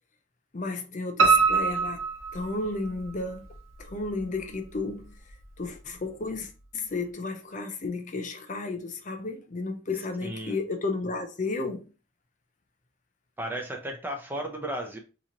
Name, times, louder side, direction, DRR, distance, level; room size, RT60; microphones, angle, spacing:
voice 1, 0.5-2.0 2.3-3.5 3.8-5.1 5.6-11.9, left 3 dB, 40° left, 0.5 m, -33 dB
Piano, 1.2-3.1 3.5-4.4 4.7-4.8 5.3-5.4 5.6-5.7, right 5 dB, 85° right, 0.8 m, -24 dB
voice 2, 10.2-10.6 13.4-15.0, right 1 dB, 10° right, 0.5 m, -34 dB
3.8 x 2.9 x 2.8 m
head